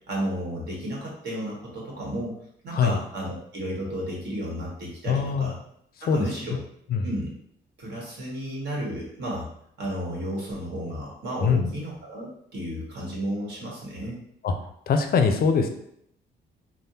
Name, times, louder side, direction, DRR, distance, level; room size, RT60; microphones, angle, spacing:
voice 1, 0.1-2.4 2.6-5.6 6.0-6.6 7.0-7.3 7.8-9.5 9.8-14.2, right 1 dB, 60° right, -4 dB, 1.3 m, -33 dB
voice 2, 5.1-5.5 6.1-6.3 6.9-7.1 11.4-11.7 14.4-14.5 14.9-15.7, left 5 dB, 50° left, 6 dB, 0.5 m, -22 dB
3.4 x 2.0 x 2.8 m, 0.72 s
cardioid pair, 90°, 20 cm